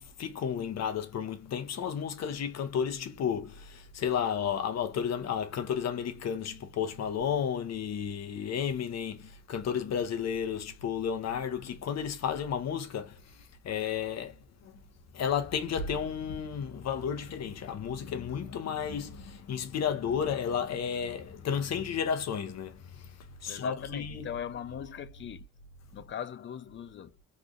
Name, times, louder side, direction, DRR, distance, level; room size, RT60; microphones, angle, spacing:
voice 1, 0.0-13.1 13.6-14.3 15.1-22.7 23.4-24.3, left 7 dB, 60° left, 1.0 m, -32 dB
voice 2, 23.5-25.5 25.9-27.1, left 9 dB, 40° left, 0.5 m, -40 dB
3.3 x 2.3 x 3.8 m
cardioid pair, 90°, 30 cm